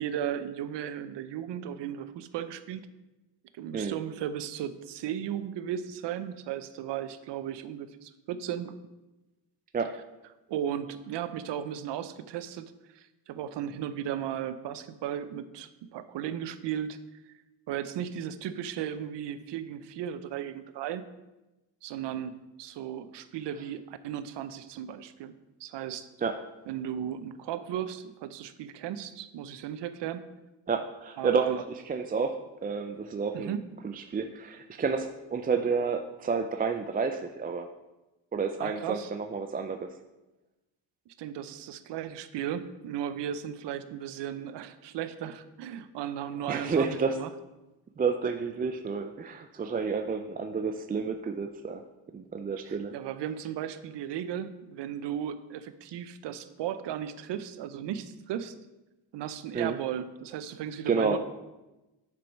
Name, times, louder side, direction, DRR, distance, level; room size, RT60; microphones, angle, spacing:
voice 1, 0.0-2.8 3.5-8.8 10.5-17.0 17.7-21.0 21.8-26.1 26.7-30.2 31.2-31.6 33.3-33.7 38.6-39.1 41.1-47.3 52.7-58.5 59.1-61.2, right 10 dB, 70° right, 12 dB, 0.7 m, -36 dB
voice 2, 30.7-33.5 33.8-37.7 38.3-39.9 46.5-47.2 48.0-51.8 52.1-52.9 59.5-59.8 60.9-61.2, right 5 dB, 20° right, 6 dB, 0.4 m, -30 dB
7.4 x 4.7 x 5.2 m, 1.0 s
cardioid pair, 95°, 44 cm